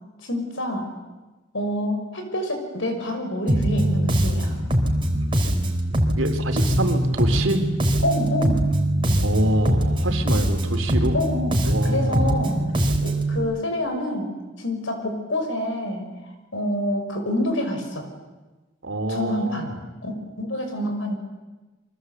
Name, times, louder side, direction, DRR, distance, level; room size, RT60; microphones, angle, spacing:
voice 1, 0.2-0.9 1.5-4.5 8.0-8.7 11.1-12.6 13.0-16.0 16.5-18.1 19.1-19.7 20.0-21.1, left 1 dB, 75° left, 5 dB, 5.8 m, -27 dB
Bass guitar, 3.5-13.4, right 1 dB, 25° right, 3.3 m, -22 dB
voice 2, 6.1-7.6 9.2-11.2 11.7-12.6 18.8-19.7, right 1 dB, 80° right, 6 dB, 3.6 m, -26 dB
29.5 x 24.0 x 8.2 m, 1.2 s
head